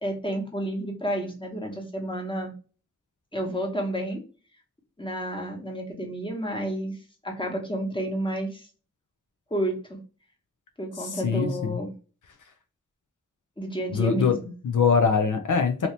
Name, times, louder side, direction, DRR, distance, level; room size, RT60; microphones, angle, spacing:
voice 1, 0.0-2.5 3.3-4.2 5.0-7.0 7.2-8.7 9.5-10.0 10.8-11.9 13.6-14.5, right 1 dB, 15° left, 1 dB, 1.1 m, -30 dB
voice 2, 11.0-11.8 13.9-14.4 14.6-15.9, left 5 dB, 75° left, 5 dB, 0.5 m, -23 dB
2.8 x 2.7 x 3.1 m, 0.36 s
wide cardioid pair, 50°, 31 cm